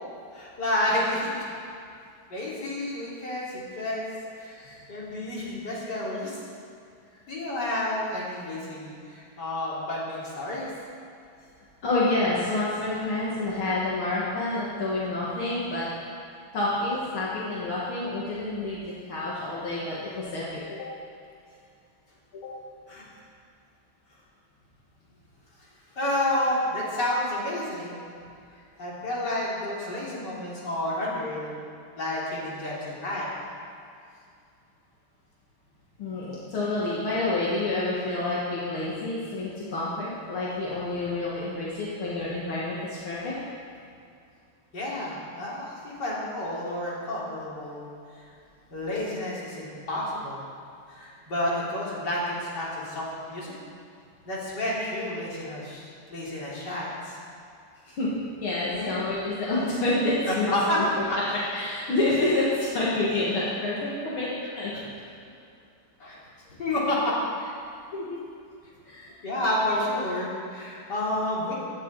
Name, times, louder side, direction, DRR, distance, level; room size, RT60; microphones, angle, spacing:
voice 1, 0.3-1.3 2.3-4.1 4.4-4.6 4.9-6.4 7.3-10.7 22.9-23.0 26.0-28.0 28.8-31.5 32.0-33.3 44.7-47.8 48.7-50.4 50.9-53.5 54.3-57.2 58.7-58.9 60.3-60.8 61.1-61.2 64.7-64.9 66.0-66.2 66.5-67.1 69.2-71.5, left 1 dB, 50° left, -6 dB, 3.9 m, -30 dB
voice 2, 4.5-4.8 11.8-15.9 16.5-20.9 22.3-22.5 36.0-43.3 57.9-58.1 58.4-60.5 60.8-64.3 64.6-64.7 67.9-68.2 68.9-69.1, left 2 dB, 75° left, -7 dB, 2.8 m, -28 dB
16.0 x 12.0 x 4.9 m, 2.4 s
omnidirectional pair, 2.3 m